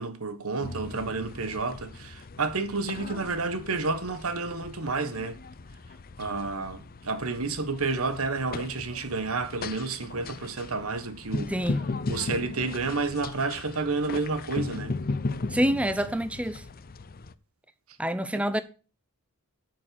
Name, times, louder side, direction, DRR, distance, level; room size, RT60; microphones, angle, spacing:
voice 1, 0.0-5.4 6.2-11.5 12.1-15.0 18.3-18.4, right 3 dB, 70° right, 1.4 m, -30 dB
sound 1, 0.6-17.3, left 3 dB, 45° left, 0.6 m, -37 dB
voice 2, 11.5-11.8 15.5-16.6 18.0-18.6, equal, 5° right, 0.5 m, -27 dB
8.8 x 6.5 x 7.6 m
head